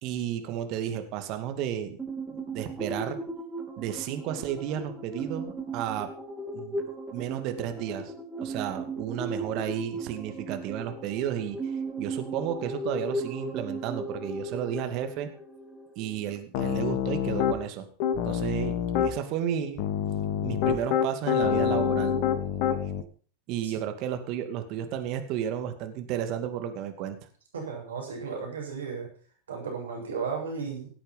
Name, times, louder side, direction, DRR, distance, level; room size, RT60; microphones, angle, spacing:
voice 1, 0.0-2.0 2.5-3.2 3.8-6.1 6.5-6.8 7.1-8.1 8.4-15.3 16.0-17.9 18.2-19.8 20.4-22.2 23.5-27.2, right 10 dB, 50° right, 8 dB, 2.4 m, -32 dB
sound 1, 2.0-16.4, right 2 dB, 15° right, 3.4 m, -37 dB
Piano, 16.5-17.6 18.0-19.1 19.8-23.0, left 8 dB, 55° left, 2.0 m, -26 dB
voice 2, 27.5-29.1 29.5-30.9, right 5 dB, 80° right, 1 dB, 7.0 m, -34 dB
17.5 x 8.8 x 5.6 m, 0.42 s
hypercardioid pair, 95°, 0 cm